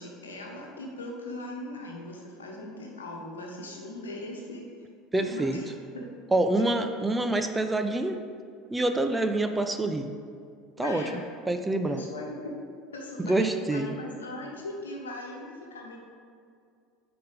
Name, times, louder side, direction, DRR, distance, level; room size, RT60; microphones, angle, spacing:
voice 1, 0.0-4.6 5.1-5.6 5.9-6.0 10.8-11.2 11.8-12.5 12.9-16.0, left 2 dB, 75° left, 0 dB, 1.2 m, -39 dB
voice 2, 5.1-5.6 6.3-8.2 8.7-10.1 10.8-11.0 11.5-12.0 13.2-13.9, right 2 dB, 10° right, 7 dB, 0.5 m, -26 dB
9.4 x 3.9 x 5.2 m, 2.3 s
figure-of-eight pair, 70°, 0 cm